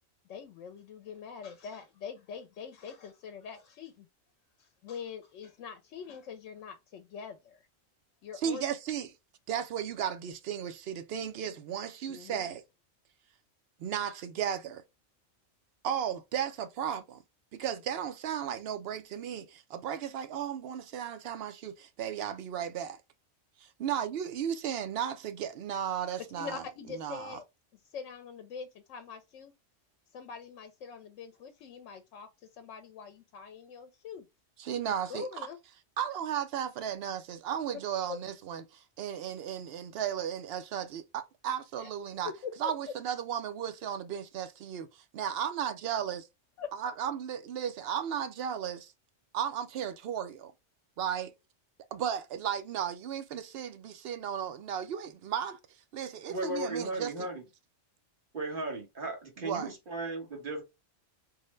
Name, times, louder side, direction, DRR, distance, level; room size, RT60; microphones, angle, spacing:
voice 1, 0.3-4.1 4.6-7.7 8.2-8.6 12.1-12.5 26.4-27.4 27.8-29.5 30.1-34.3 34.9-35.6 38.1-38.2 41.8-41.9 42.2-42.7 46.6-46.7, left 6 dB, 85° left, 0.9 m, -43 dB
voice 2, 8.4-9.1 9.5-12.6 13.8-14.8 15.8-17.2 17.5-23.0 23.6-26.6 26.9-27.4 34.6-35.3 36.0-42.3 42.6-46.2 46.7-48.9 49.3-50.5 51.0-51.3 51.9-55.6 55.9-57.1 59.4-59.7, right 9 dB, 65° right, 0.7 m, -35 dB
voice 3, 56.3-57.4 58.3-60.6, right 2 dB, 45° right, 1.3 m, -36 dB
3.7 x 2.1 x 3.1 m
omnidirectional pair, 1.2 m